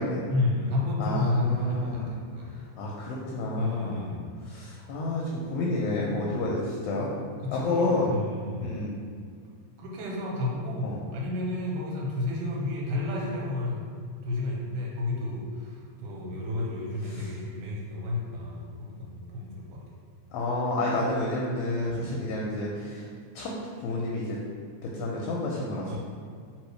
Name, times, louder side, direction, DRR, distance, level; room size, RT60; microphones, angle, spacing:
voice 1, 0.3-2.6 3.6-4.4 6.3-6.4 7.4-8.7 9.8-13.9 14.3-19.8 21.9-22.3 25.9-26.0, left 2 dB, 85° right, -2 dB, 2.3 m, -31 dB
voice 2, 1.0-2.1 2.8-4.1 4.5-7.1 7.5-8.1 8.6-9.0 10.8-11.0 17.1-17.3 20.3-23.0 23.4-24.4 24.8-26.0, left 2 dB, 80° left, -3 dB, 1.8 m, -30 dB
4.5 x 3.1 x 3.2 m, 2.1 s
omnidirectional pair, 3.7 m